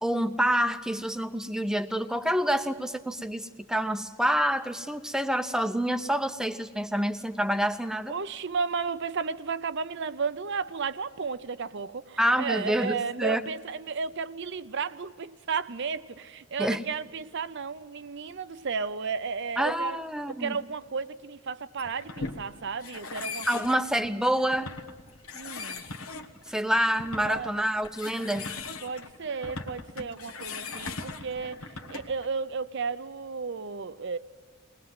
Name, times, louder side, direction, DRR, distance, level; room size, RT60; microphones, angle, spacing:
voice 1, 0.0-8.1 12.2-13.4 16.6-16.8 19.6-20.6 23.5-24.7 26.5-28.5, equal, 5° right, 0.7 m, -27 dB
voice 2, 8.1-20.0 20.3-23.6 25.4-25.8 27.2-27.7 28.8-34.2, right 5 dB, 55° right, 0.6 m, -33 dB
sound 1, 21.8-32.3, left 4 dB, 90° left, 1.4 m, -40 dB
21.5 x 19.5 x 7.6 m
head